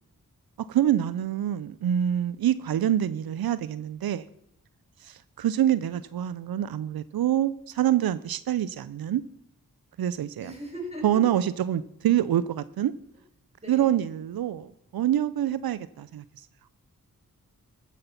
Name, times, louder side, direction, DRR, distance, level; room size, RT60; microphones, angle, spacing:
voice 1, 0.7-4.2 5.0-9.2 10.0-10.5 11.0-12.9 13.7-16.2, right 11 dB, 85° right, 16 dB, 0.5 m, -26 dB
voice 2, 10.4-11.2 13.6-13.9, right 1 dB, 15° right, -1 dB, 5.6 m, -39 dB
14.5 x 8.4 x 5.7 m, 0.73 s
cardioid pair, 55°, 35 cm